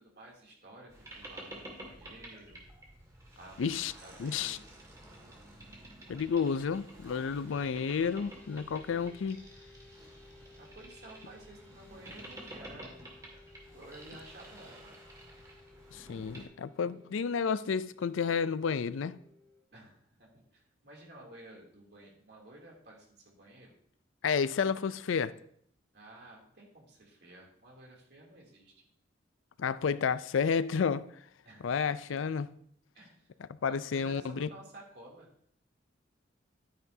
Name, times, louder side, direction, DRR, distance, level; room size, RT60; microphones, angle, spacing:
voice 1, 0.0-2.6 3.4-4.7 10.6-13.1 13.7-15.0 19.7-23.7 25.9-28.7 31.4-31.7 32.1-32.2 32.9-33.3 33.9-35.3, right 1 dB, 55° right, 2.8 m, -53 dB
Boat Water vehicle, 0.9-16.4, right 1 dB, 15° right, 2.0 m, -51 dB
voice 2, 3.6-3.9 4.2-4.6 6.1-9.4 15.9-19.2 24.2-25.3 29.6-31.0 31.6-32.5 33.6-34.5, left 6 dB, 85° left, 0.4 m, -31 dB
sound 1, 7.5-19.6, left 3 dB, 10° left, 2.3 m, -58 dB
12.0 x 9.5 x 2.7 m
head